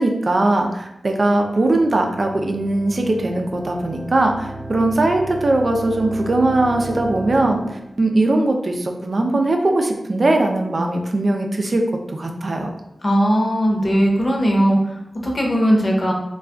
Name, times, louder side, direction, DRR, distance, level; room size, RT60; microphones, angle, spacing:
voice 1, 0.0-11.8 12.1-12.7, right 2 dB, 55° right, 3 dB, 0.5 m, -20 dB
sound 1, 1.1-7.9, right 1 dB, ahead, 0.5 m, -34 dB
voice 2, 13.0-14.8 15.2-16.1, equal, 40° left, -1 dB, 0.9 m, -18 dB
2.3 x 2.3 x 3.6 m, 0.91 s
cardioid pair, 40°, 0 cm